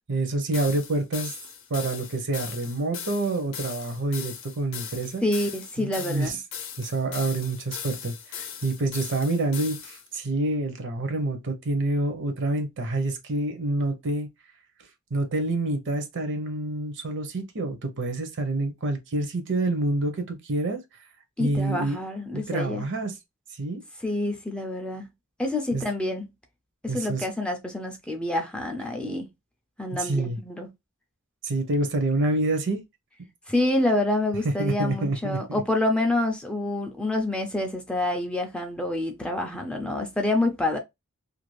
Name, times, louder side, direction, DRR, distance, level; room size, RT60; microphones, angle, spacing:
voice 1, 0.1-1.3 1.7-5.2 5.8-6.3 6.8-14.3 15.1-20.8 21.4-22.0 22.3-23.2 23.6-23.8 25.7-25.8 26.9-27.3 29.9-30.4 31.4-32.8 34.6-35.6, right 2 dB, 55° right, 0.6 m, -27 dB
sound 1, 0.5-10.1, left 8 dB, 60° left, 0.6 m, -39 dB
voice 2, 5.2-6.4 21.4-22.8 24.0-25.1 25.4-26.3 26.8-29.3 29.8-30.7 33.5-40.8, left 2 dB, 5° left, 0.4 m, -27 dB
2.5 x 2.3 x 3.0 m
head